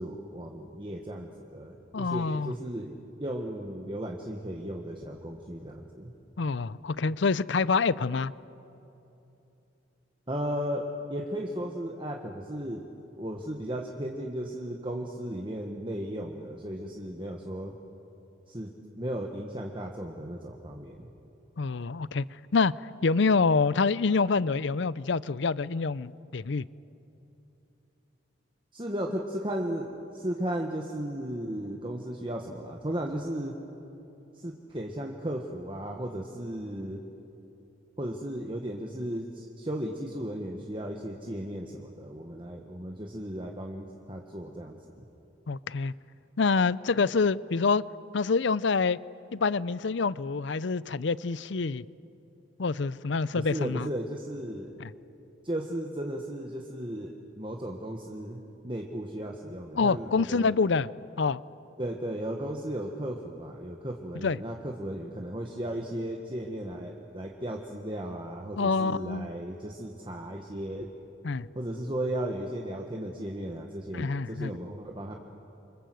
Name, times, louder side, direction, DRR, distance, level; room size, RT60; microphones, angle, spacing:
voice 1, 0.0-2.9 3.2-6.1 10.3-12.8 13.2-17.7 18.5-21.1 28.7-33.5 34.3-37.0 38.0-45.0 53.3-54.8 55.4-60.6 61.8-70.9 71.5-75.1, right 1 dB, 25° right, 1 dB, 1.5 m, -35 dB
voice 2, 1.9-2.5 6.4-8.3 21.6-22.2 22.5-22.7 23.0-26.7 45.5-45.9 46.4-47.8 48.1-49.0 49.3-51.8 52.6-53.9 54.8-54.9 59.8-60.9 61.2-61.4 64.2-64.4 68.6-69.3 71.2-71.5 73.9-74.5, left 4 dB, 65° left, 19 dB, 0.5 m, -26 dB
28.0 x 25.5 x 7.8 m, 2.9 s
head